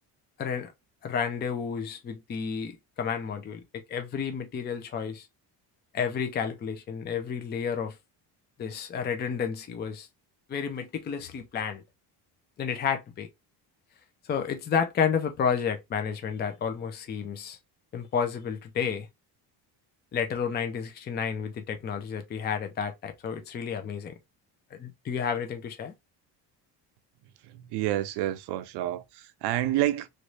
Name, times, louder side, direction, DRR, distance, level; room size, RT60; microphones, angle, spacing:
voice 1, 0.4-0.7 1.0-5.3 5.9-7.9 8.6-10.1 10.5-11.8 12.6-13.3 14.2-17.6 17.9-19.1 20.1-24.1 24.7-25.9, left 7 dB, 25° left, 0.5 m, -31 dB
voice 2, 27.4-30.1, right 14 dB, 75° right, 0.6 m, -29 dB
3.1 x 2.6 x 3.0 m
cardioid pair, 155°, 41 cm